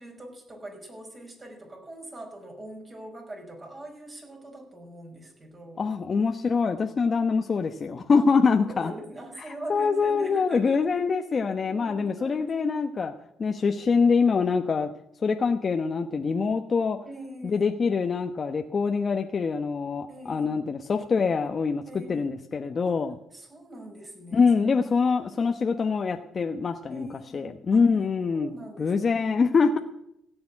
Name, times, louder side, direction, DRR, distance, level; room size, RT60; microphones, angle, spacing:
voice 1, 0.0-5.9 8.2-8.3 8.6-10.8 11.6-12.7 17.0-17.7 20.1-20.7 21.9-22.3 22.8-23.0 23.3-24.5 26.9-27.8 28.3-29.2, right 1 dB, 30° right, 1 dB, 5.6 m, -42 dB
voice 2, 5.8-8.9 9.7-13.1 13.4-14.9 15.2-17.0 17.4-21.8 22.1-23.2 24.3-27.1 27.3-28.5 28.8-29.8, left 5 dB, 40° left, 5 dB, 1.0 m, -24 dB
16.5 x 6.9 x 9.8 m, 0.78 s
cardioid pair, 90°, 0 cm